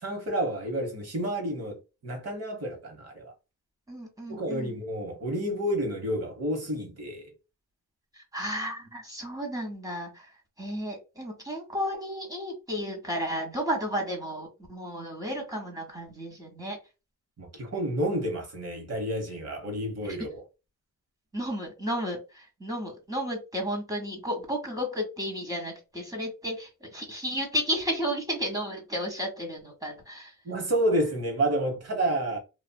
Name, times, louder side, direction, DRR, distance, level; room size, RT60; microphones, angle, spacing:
voice 1, 0.0-3.3 4.3-7.3 17.4-20.4 30.4-32.4, right 1 dB, 50° right, 1.2 m, -30 dB
voice 2, 3.9-4.8 8.1-10.3 10.6-16.8 20.0-20.2 21.3-30.3, equal, 10° right, 1.1 m, -33 dB
2.8 x 2.5 x 2.2 m
wide cardioid pair, 105°, 32 cm